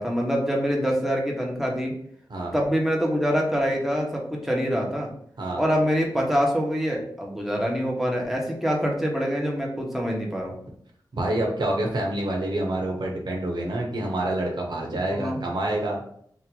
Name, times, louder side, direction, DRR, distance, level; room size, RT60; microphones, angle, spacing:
voice 1, 0.0-1.9 2.5-5.1 5.5-10.5 14.9-15.4, equal, 5° right, -1 dB, 1.2 m, -25 dB
voice 2, 11.1-16.0, right 1 dB, 70° right, -1 dB, 1.1 m, -27 dB
3.6 x 2.9 x 4.6 m, 0.66 s
wide cardioid pair, 80°, 8 cm